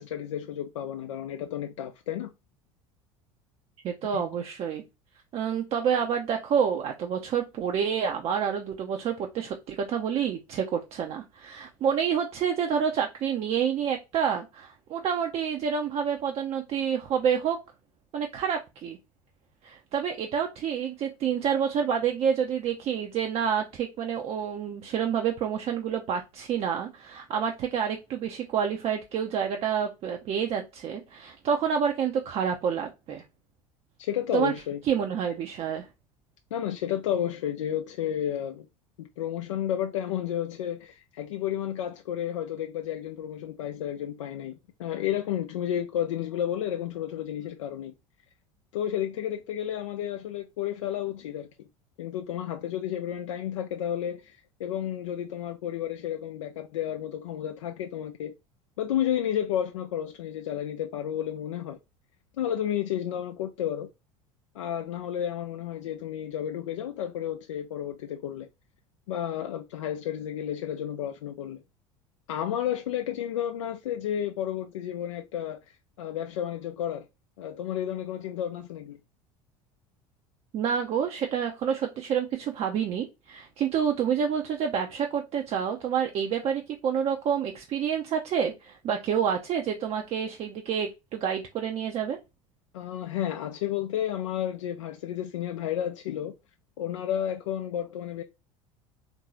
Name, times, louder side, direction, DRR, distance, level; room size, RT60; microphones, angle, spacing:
voice 1, 0.0-2.3 4.1-4.2 34.0-34.8 36.5-38.7 39.0-44.5 44.8-47.9 48.7-51.5 52.0-58.3 58.8-61.8 62.4-63.9 64.5-68.5 69.1-71.6 72.3-77.1 77.4-79.0 92.7-96.3 96.8-98.2, left 10 dB, 65° left, 0.4 m, -31 dB
voice 2, 3.8-4.8 5.3-17.6 18.1-19.0 19.6-33.2 34.3-34.5 34.9-35.9 80.5-92.2, right 7 dB, 35° right, 0.6 m, -28 dB
3.7 x 2.6 x 3.0 m
figure-of-eight pair, 65°, 17 cm